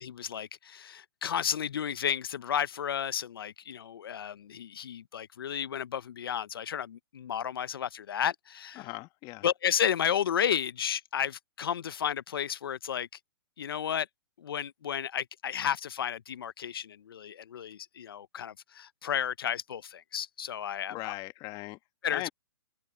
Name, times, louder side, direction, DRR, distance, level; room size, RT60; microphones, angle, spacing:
voice 1, 0.0-8.9 9.4-13.1 13.6-14.1 14.4-21.1 22.0-22.3, left 9 dB, 70° left, 0.8 m, -32 dB
voice 2, 8.8-9.5 20.9-21.8 22.1-22.3, left 21 dB, 30° left, 1.7 m, -39 dB
hypercardioid pair, 135°, 13 cm